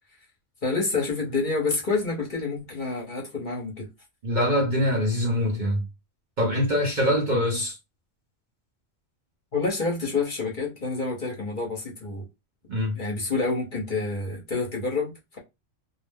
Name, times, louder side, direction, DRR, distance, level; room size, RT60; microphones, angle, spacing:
voice 1, 0.6-3.9 9.5-12.2 12.9-15.4, left 3 dB, 45° left, 1.0 m, -28 dB
voice 2, 4.2-5.9 6.4-7.8 12.7-13.0, left 1 dB, 45° right, 0.7 m, -24 dB
2.6 x 2.0 x 3.4 m
omnidirectional pair, 1.3 m